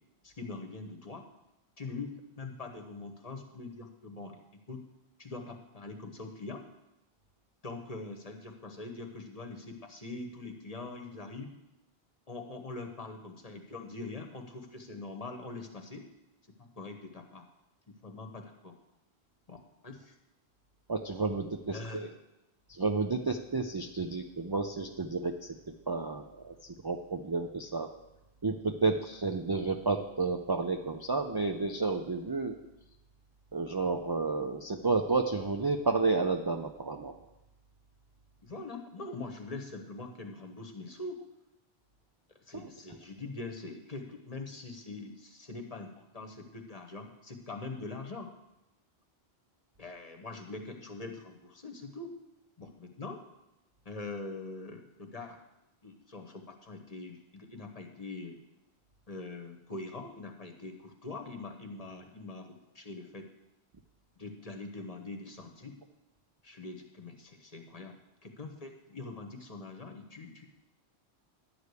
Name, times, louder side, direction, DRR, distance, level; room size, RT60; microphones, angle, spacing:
voice 1, 0.2-1.2 1.8-4.4 4.7-4.8 5.2-6.6 7.6-11.5 12.3-16.1 16.6-17.4 17.9-18.7 19.5-20.1 21.7-22.2 38.4-41.2 42.4-48.3 49.8-52.1 52.6-53.2 53.8-55.4 55.8-58.4 59.1-63.3 64.2-65.8 66.4-67.9 68.2-70.5, left 3 dB, 35° left, 4 dB, 1.2 m, -43 dB
voice 2, 20.9-22.1 22.7-25.6 25.9-26.5 26.8-27.9 28.4-32.6 33.5-37.1 42.5-42.7, right 3 dB, 35° right, 4 dB, 0.4 m, -31 dB
11.0 x 4.9 x 8.1 m, 0.92 s
omnidirectional pair, 1.1 m